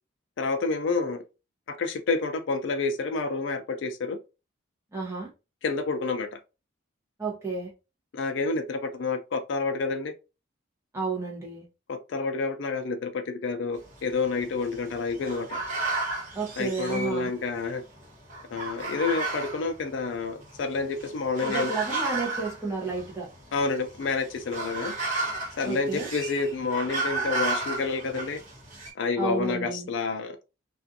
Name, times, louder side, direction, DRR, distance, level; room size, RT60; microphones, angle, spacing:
voice 1, 0.4-1.2 1.7-4.2 5.6-6.3 8.1-10.1 11.9-15.6 16.6-17.8 18.5-21.7 23.5-24.9 25.6-28.4 29.0-30.4, left 4 dB, 60° left, 0.4 m, -29 dB
voice 2, 4.9-5.3 7.2-7.7 10.9-11.7 16.3-17.3 21.4-23.3 25.6-26.1 29.2-29.9, right 4 dB, 15° right, 0.8 m, -31 dB
sound 1, 13.8-17.7 18.0-28.9, right 2 dB, 40° right, 1.1 m, -33 dB
2.4 x 2.4 x 2.6 m
head